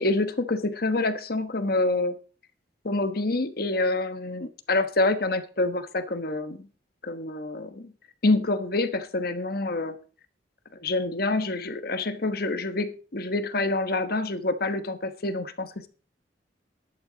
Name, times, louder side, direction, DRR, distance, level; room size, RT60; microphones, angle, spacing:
voice 1, 0.0-2.2 2.8-6.7 7.0-7.9 8.2-10.0 10.8-15.9, left 2 dB, 55° left, 10 dB, 1.2 m, -27 dB
13.5 x 11.5 x 4.0 m, 0.39 s
head